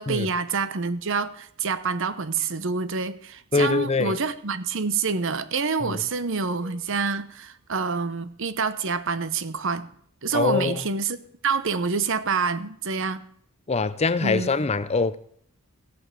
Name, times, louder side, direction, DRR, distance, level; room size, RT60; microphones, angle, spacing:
voice 1, 0.0-9.9 10.2-11.2 11.4-13.2 14.2-14.5, right 4 dB, 60° right, 0.9 m, -27 dB
voice 2, 3.5-4.2 5.8-6.0 10.3-10.8 13.7-15.2, left 3 dB, 30° left, 0.5 m, -23 dB
sound 1, 6.6-8.7, right 7 dB, 80° right, 4.5 m, -55 dB
16.0 x 7.8 x 6.8 m
head